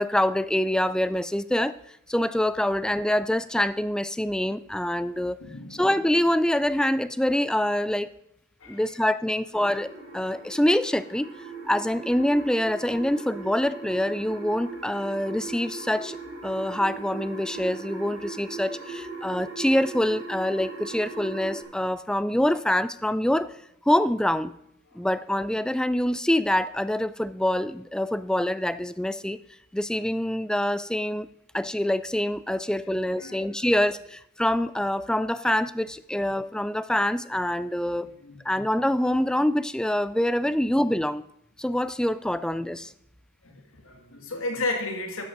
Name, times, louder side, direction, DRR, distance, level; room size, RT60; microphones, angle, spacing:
voice 1, 0.0-1.8 2.1-5.4 5.7-8.1 8.7-11.3 11.7-16.2 16.4-23.5 23.9-24.5 24.9-29.4 29.7-31.3 31.5-38.1 38.4-41.2 41.6-42.9, left 1 dB, 5° left, 15 dB, 0.3 m, -25 dB
voice 2, 5.4-5.8 8.6-8.8 32.9-33.7 38.0-38.4 43.4-45.2, left 2 dB, 80° left, 3 dB, 2.1 m, -34 dB
sound 1, 9.5-21.6, right 3 dB, 70° right, 4.9 m, -39 dB
12.5 x 7.8 x 5.2 m, 0.76 s
head